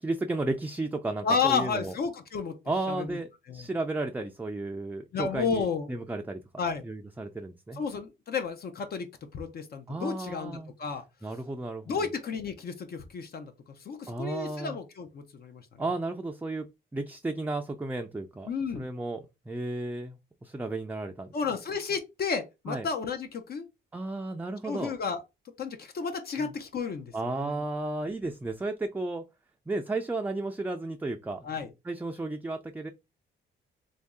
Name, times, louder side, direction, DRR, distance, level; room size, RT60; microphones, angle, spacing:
voice 1, 0.0-1.9 2.7-6.4 6.8-7.8 9.9-10.7 11.2-11.9 14.1-14.8 15.8-16.7 16.9-18.5 18.7-21.3 22.7-22.9 23.9-24.9 26.4-26.5 27.1-29.2 29.7-31.5 31.8-32.9, right 2 dB, 10° right, 0.4 m, -33 dB
voice 2, 1.2-2.6 2.9-3.2 3.5-3.7 5.1-5.9 6.6-6.8 7.8-9.1 9.3-11.0 11.9-13.5 13.8-15.7 18.5-18.9 21.3-23.7 24.6-25.2 25.6-27.6 31.4-31.7, left 5 dB, 50° left, 0.6 m, -32 dB
3.0 x 2.6 x 3.6 m
cardioid pair, 90°, 20 cm